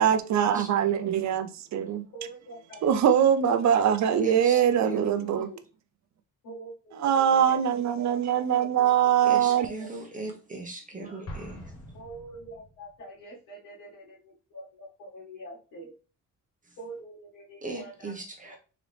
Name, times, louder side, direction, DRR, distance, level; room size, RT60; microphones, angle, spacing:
voice 1, 0.0-2.0 2.8-5.5 7.0-9.7, right 9 dB, 55° right, 0.6 m, -23 dB
voice 2, 0.5-0.9 4.2-5.4 9.2-11.7 16.6-16.8 17.6-18.6, right 3 dB, 25° right, 0.9 m, -39 dB
voice 3, 2.1-3.1 5.2-5.6 6.4-9.9 10.9-11.1 11.9-15.9 16.8-18.1 18.5-18.6, right 2 dB, 75° left, 1.8 m, -45 dB
Explosion, 11.3-13.0, left 1 dB, 45° left, 1.2 m, -43 dB
3.9 x 2.9 x 3.3 m
cardioid pair, 120°, 34 cm